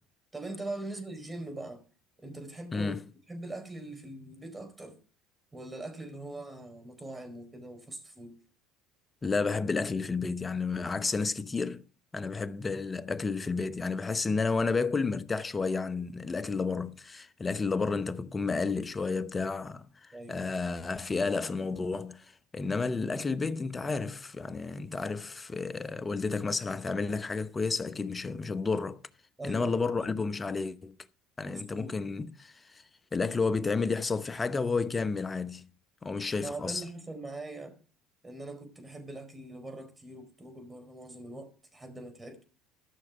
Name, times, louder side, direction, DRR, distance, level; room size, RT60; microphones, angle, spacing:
voice 1, 0.3-1.8 2.2-3.0 3.3-5.0 5.5-8.3 20.1-20.4 29.4-29.8 31.4-31.9 36.4-37.8 38.2-42.4, right 2 dB, 15° right, 4.5 m, -42 dB
voice 2, 2.7-3.0 9.2-11.8 12.1-29.0 29.4-31.0 31.4-32.8 33.1-35.6 36.0-36.8, left 4 dB, 25° left, 0.9 m, -31 dB
14.5 x 6.4 x 6.0 m
hypercardioid pair, 80°, 0 cm